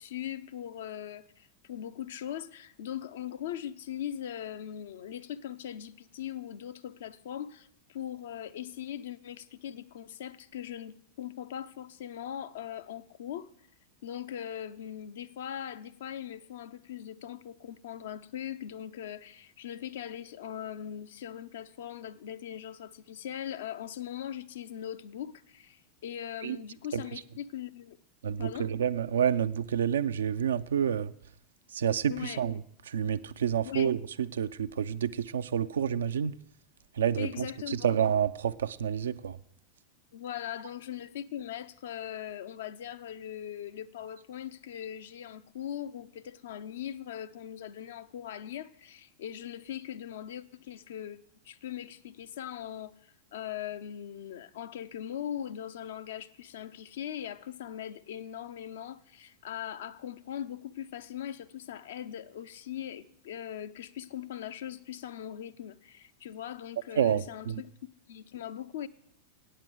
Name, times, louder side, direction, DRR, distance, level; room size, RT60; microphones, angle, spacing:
voice 1, 0.0-13.5 14.0-28.0 28.4-28.7 32.1-32.4 33.6-34.0 37.2-38.0 40.1-67.7 68.1-68.9, left 10 dB, 60° left, 0.5 m, -40 dB
voice 2, 28.2-31.1 31.7-32.6 32.9-36.4 37.0-39.4 67.0-67.6, right 8 dB, 65° right, 0.4 m, -29 dB
8.9 x 7.6 x 8.0 m
figure-of-eight pair, 90°, 0 cm